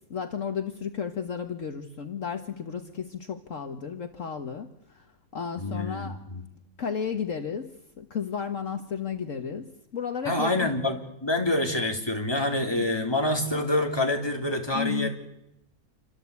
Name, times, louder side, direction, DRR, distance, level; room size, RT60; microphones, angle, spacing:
voice 1, 0.1-5.1 5.3-6.2 6.8-7.7 8.0-10.7 12.7-12.9 14.7-15.1, left 7 dB, 60° left, 6 dB, 1.7 m, -33 dB
voice 2, 5.6-6.4 10.2-15.1, left 1 dB, 15° left, 2 dB, 3.5 m, -27 dB
28.0 x 25.0 x 8.4 m, 0.83 s
omnidirectional pair, 1.6 m